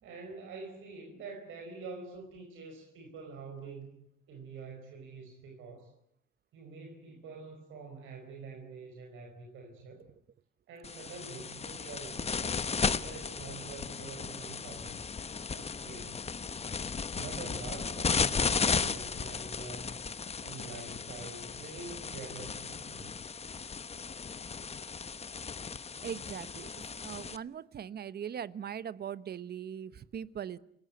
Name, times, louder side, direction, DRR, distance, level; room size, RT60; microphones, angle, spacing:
voice 1, 0.0-5.9 6.5-10.0 10.7-15.0 15.5-16.2 17.1-20.0 20.4-23.1, right 4 dB, 85° right, 2 dB, 5.0 m, -46 dB
sound 1, 10.8-27.4, left 5 dB, 30° left, 1.0 m, -35 dB
voice 2, 26.0-30.6, right 8 dB, 55° right, 16 dB, 1.1 m, -40 dB
30.0 x 17.0 x 9.3 m, 0.71 s
cardioid pair, 90°, 20 cm